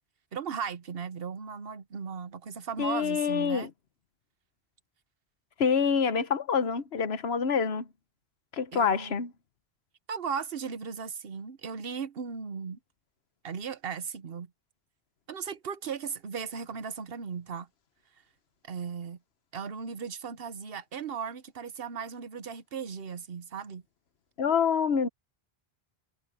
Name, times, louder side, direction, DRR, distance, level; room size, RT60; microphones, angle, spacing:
voice 1, 0.3-3.7 8.7-9.2 10.1-12.8 13.4-14.5 15.3-17.7 18.6-19.2 19.5-23.8, right 6 dB, 70° right, 1.2 m, -37 dB
voice 2, 2.8-3.7 5.6-7.9 8.5-9.3 24.4-25.1, left 6 dB, 80° left, 1.3 m, -26 dB
omnidirectional pair, 1.0 m